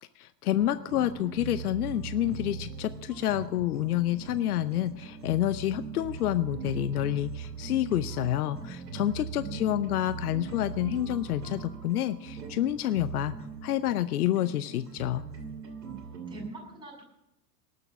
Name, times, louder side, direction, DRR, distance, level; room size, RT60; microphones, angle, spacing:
voice 1, 0.2-15.2, left 13 dB, 65° left, 13 dB, 0.7 m, -28 dB
sound 1, 0.6-16.5, right 5 dB, 70° right, 2.3 m, -40 dB
voice 2, 9.4-10.1 16.3-17.0, right 3 dB, 10° right, -3 dB, 6.9 m, -43 dB
18.5 x 6.8 x 7.1 m, 0.86 s
figure-of-eight pair, 85°, 49 cm